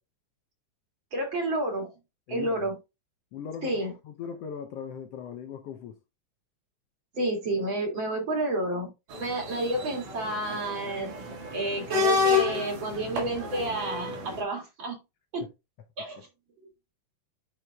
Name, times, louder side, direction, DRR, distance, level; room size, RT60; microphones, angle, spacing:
voice 1, 1.1-1.9 2.3-2.8 3.6-3.9 7.1-8.9 9.2-11.2 11.5-15.0 15.3-15.5 16.0-16.3 16.6-16.7, right 1 dB, 40° right, 2.7 m, -30 dB
voice 2, 2.3-2.7 3.3-6.0 15.4-15.5, left 7 dB, 80° left, 1.4 m, -39 dB
sound 1, 9.1-14.4, left 5 dB, 90° right, 3.3 m, -30 dB
11.0 x 4.9 x 2.2 m
omnidirectional pair, 3.6 m